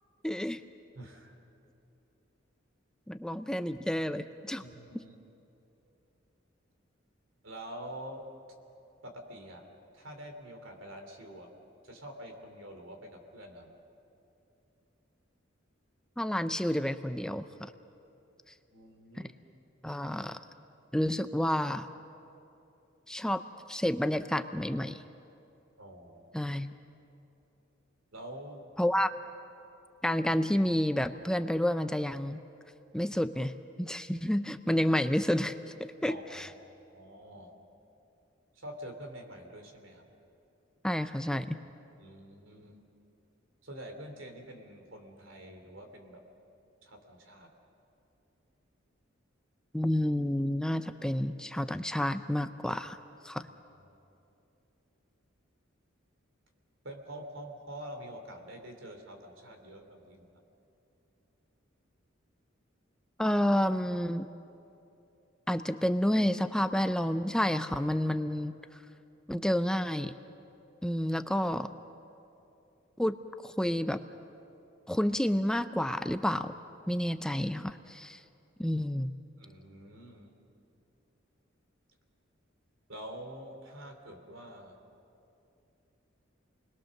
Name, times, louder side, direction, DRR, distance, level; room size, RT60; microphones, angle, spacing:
voice 1, 0.2-0.6 3.1-4.6 16.2-17.7 19.8-20.4 20.9-21.9 23.1-23.4 23.7-25.0 26.3-26.7 28.8-29.1 30.0-32.4 32.9-33.5 33.8-36.5 40.8-41.6 49.7-53.0 53.2-53.5 63.2-64.3 65.5-68.6 69.3-70.1 70.8-71.7 73.0-73.2 73.4-74.0 74.9-76.5 76.9-78.2 78.6-79.1, left 1 dB, 5° left, 9 dB, 0.5 m, -30 dB
voice 2, 0.9-1.3 4.6-5.2 7.4-8.3 9.0-9.6 9.9-11.5 11.8-13.7 18.7-19.3 25.8-26.3 28.1-28.7 36.1-36.5 36.9-37.5 38.5-40.1 42.0-42.8 43.6-46.2 46.8-47.5 53.7-53.8 56.8-60.3 79.4-80.4 82.9-84.8, right 1 dB, 80° right, 4 dB, 3.0 m, -46 dB
29.0 x 21.0 x 6.5 m, 2.8 s
head